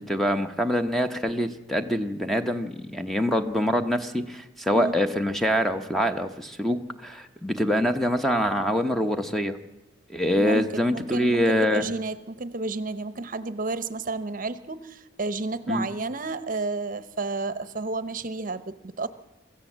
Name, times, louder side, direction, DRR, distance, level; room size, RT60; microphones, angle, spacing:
voice 1, 0.0-9.6 10.1-11.8 15.7-15.9, equal, ahead, 7 dB, 0.9 m, -25 dB
voice 2, 10.4-19.1, right 3 dB, 45° right, 13 dB, 0.9 m, -31 dB
24.0 x 14.5 x 7.4 m, 0.95 s
head